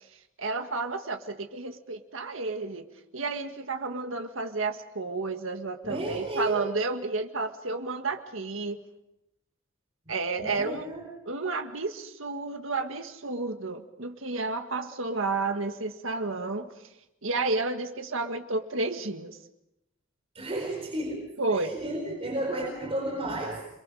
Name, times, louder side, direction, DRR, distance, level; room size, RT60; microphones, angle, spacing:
voice 1, 0.4-2.9 3.1-8.8 10.1-10.9 11.3-16.7 17.2-19.4 21.4-21.7, right 3 dB, 85° right, 6 dB, 1.8 m, -31 dB
voice 2, 5.8-6.7 10.4-11.1 20.3-23.7, right 1 dB, 30° right, 0 dB, 4.5 m, -33 dB
29.0 x 23.0 x 4.9 m, 0.84 s
head